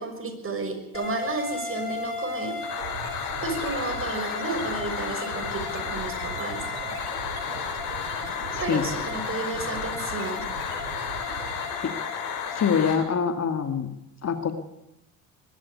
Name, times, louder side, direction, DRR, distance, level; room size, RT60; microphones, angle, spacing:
voice 1, 0.0-2.6 3.4-6.6 8.6-10.4, right 3 dB, 30° right, 6 dB, 6.1 m, -32 dB
sound 1, 0.9-12.9, left 6 dB, 70° left, 6.9 m, -32 dB
sound 2, 2.8-11.9, right 7 dB, 80° right, 4.7 m, -40 dB
voice 2, 8.5-8.9 11.8-11.9 12.5-13.9 14.2-14.5, left 6 dB, 40° left, 7 dB, 2.3 m, -25 dB
22.0 x 12.5 x 9.7 m, 0.85 s
hypercardioid pair, 70°, 42 cm